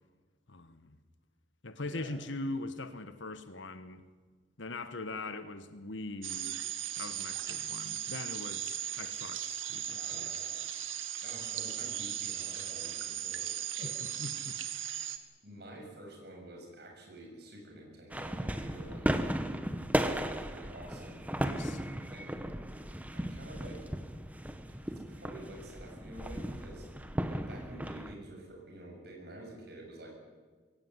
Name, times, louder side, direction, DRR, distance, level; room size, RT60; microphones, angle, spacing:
voice 1, 0.5-1.0 1.6-4.0 4.6-6.6 7.0-10.3 13.8-14.6 21.4-21.8, left 2 dB, 70° left, 1.3 m, -41 dB
sound 1, 6.2-15.2, right 11 dB, 80° right, 1.8 m, -37 dB
voice 2, 9.9-10.5 11.2-13.4 13.8-13.9 15.4-19.1 20.1-21.2 22.1-22.4 23.1-23.8 24.9-26.8 27.2-30.1, right 1 dB, 55° right, 7.5 m, -49 dB
sound 2, 18.1-28.2, equal, 10° right, 1.1 m, -35 dB
22.0 x 17.5 x 9.6 m
head